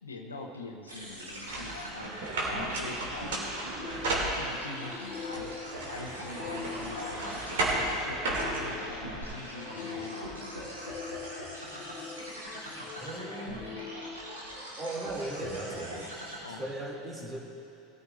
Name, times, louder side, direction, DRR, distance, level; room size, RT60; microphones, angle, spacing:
voice 1, 0.0-2.2 2.4-3.5 4.4-5.5 5.9-10.9 16.4-16.7, left 3 dB, 85° left, 2 dB, 1.1 m, -43 dB
sound 1, 0.9-16.4, right 1 dB, 90° right, 3.1 m, -42 dB
sound 2, 1.5-4.8 5.3-9.2, right 2 dB, 70° right, 3.0 m, -33 dB
sound 3, 3.7-15.1, left 6 dB, 40° left, 1.0 m, -44 dB
voice 2, 13.0-13.6 14.8-16.1 16.5-17.4, right 1 dB, 25° right, -2 dB, 3.1 m, -37 dB
20.5 x 13.5 x 2.7 m, 2.8 s
figure-of-eight pair, 80°, 0 cm